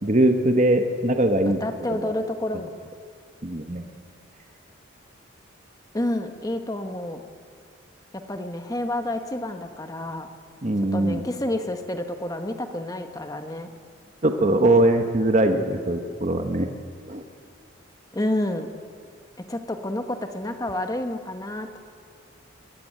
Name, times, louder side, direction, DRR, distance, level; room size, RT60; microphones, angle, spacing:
voice 1, 0.0-1.6 1.9-2.1 3.4-3.9 10.6-11.3 14.2-16.7 17.1-17.2, right 1 dB, 35° right, 5 dB, 1.0 m, -21 dB
voice 2, 1.4-2.7 5.9-7.2 8.1-10.3 10.9-13.7 18.1-18.7 19.5-21.7, left 1 dB, 15° left, 6 dB, 1.1 m, -29 dB
22.5 x 14.0 x 9.2 m, 2.2 s
head